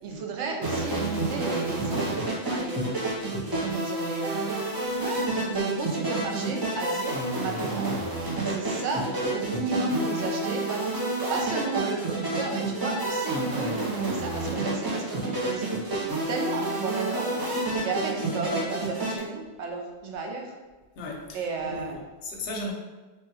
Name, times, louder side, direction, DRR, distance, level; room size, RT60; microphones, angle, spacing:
voice 1, 0.0-3.0 3.6-4.7 5.5-7.9 8.4-15.8 16.3-17.5 17.8-20.5 21.3-22.0, right 3 dB, 90° right, 1 dB, 0.9 m, -33 dB
sound 1, 0.6-19.2, right 2 dB, 35° right, 0.4 m, -29 dB
voice 2, 21.0-22.7, left 2 dB, 65° left, 0 dB, 0.7 m, -36 dB
3.3 x 2.2 x 2.7 m, 1.2 s
omnidirectional pair, 1.1 m